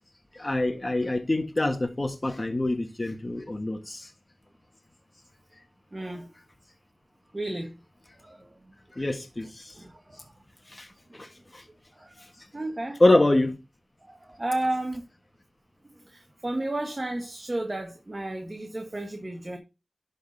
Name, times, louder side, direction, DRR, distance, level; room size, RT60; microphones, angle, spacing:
voice 1, 0.3-4.1 9.0-9.6 10.7-10.9 11.1-11.3 11.5-11.6 13.0-13.5, left 2 dB, 35° left, 1.6 m, -25 dB
voice 2, 5.9-6.3 7.3-7.8 8.2-9.0 9.7-10.3 11.2-11.3 11.9-12.3 12.5-13.0 14.0-15.0 15.9-19.6, right 1 dB, 35° right, 1.3 m, -33 dB
11.5 x 4.2 x 4.0 m
cardioid pair, 45°, 0 cm